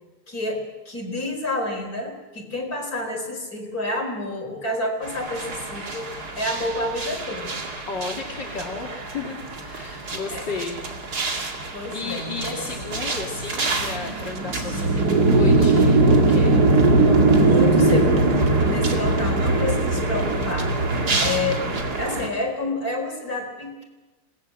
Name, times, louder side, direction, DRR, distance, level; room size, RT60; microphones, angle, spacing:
voice 1, 0.3-7.6 9.9-10.4 11.7-12.6 17.3-18.3 18.6-20.7 21.2-21.7 22.0-23.8, left 2 dB, 55° left, 2 dB, 5.1 m, -29 dB
sound 1, 5.0-22.3, right 2 dB, 60° right, 2.7 m, -22 dB
voice 2, 7.9-10.8 11.2-16.6, left 4 dB, 75° left, -1 dB, 3.2 m, -33 dB
26.5 x 19.5 x 7.5 m, 1.2 s
omnidirectional pair, 1.9 m